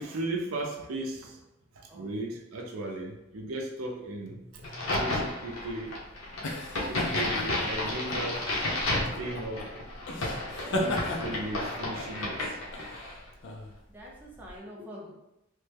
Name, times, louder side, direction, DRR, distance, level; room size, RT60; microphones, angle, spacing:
voice 1, 0.0-1.4 1.7-6.0 6.9-8.5 9.1-9.7 10.6-12.6, right 2 dB, 90° right, 2 dB, 0.5 m, -36 dB
Crack, 4.6-13.2, left 1 dB, 80° left, 0.8 m, -32 dB
sound 1, 5.4-14.6, left 1 dB, 60° left, 0.5 m, -36 dB
voice 2, 13.9-15.1, equal, 10° right, -5 dB, 0.6 m, -45 dB
3.1 x 2.2 x 3.3 m, 0.87 s
head